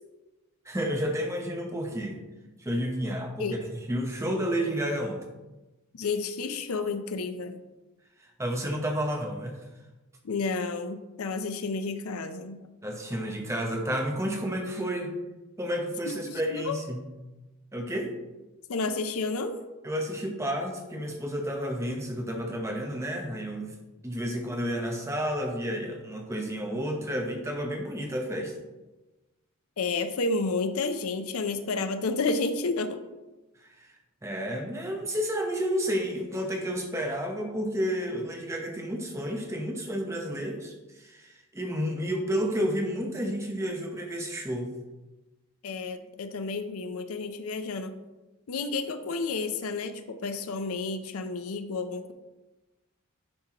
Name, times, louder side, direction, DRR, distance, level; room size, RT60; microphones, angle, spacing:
voice 1, 0.6-2.2 2.6-3.6 3.9-5.2 8.2-9.6 12.8-15.2 15.6-17.0 17.7-18.1 19.8-23.7 24.0-28.5 33.8-33.9 34.2-44.7, equal, 15° right, 2 dB, 0.8 m, -31 dB
voice 2, 5.9-7.6 10.2-12.6 16.2-16.8 18.7-19.6 29.8-33.0 45.6-47.9 48.5-52.1, left 3 dB, 85° left, 9 dB, 0.5 m, -31 dB
9.8 x 4.4 x 2.9 m, 1.1 s
head